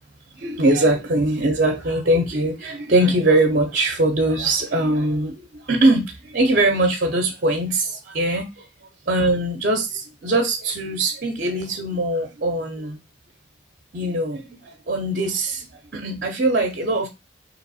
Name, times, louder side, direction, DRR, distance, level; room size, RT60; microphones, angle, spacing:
voice 1, 0.3-8.7 9.1-13.0 13.9-17.1, right 1 dB, 50° right, 0.6 m, -21 dB
3.5 x 3.0 x 4.1 m
head